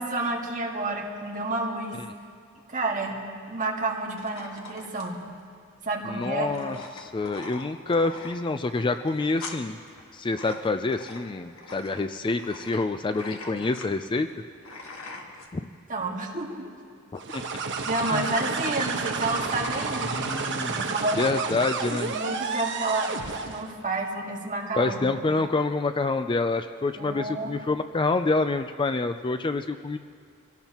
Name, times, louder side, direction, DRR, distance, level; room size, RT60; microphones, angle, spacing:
voice 1, 0.0-2.0 2.7-3.2 3.5-5.2 5.9-6.5 15.9-16.5 17.9-20.2 20.6-21.2 21.8-23.2 23.5-25.0 27.0-27.6, right 2 dB, 35° right, -1 dB, 1.9 m, -30 dB
sound 1, 4.2-15.5, left 3 dB, 65° left, 1.7 m, -43 dB
voice 2, 6.0-9.8 10.1-14.3 15.5-15.6 17.1-17.6 18.1-18.3 20.1-20.8 21.2-22.1 24.7-30.0, left 3 dB, 20° left, 9 dB, 0.4 m, -27 dB
sound 2, 17.2-23.7, right 4 dB, 55° right, 1.2 m, -31 dB
26.0 x 17.5 x 3.0 m, 2.2 s
head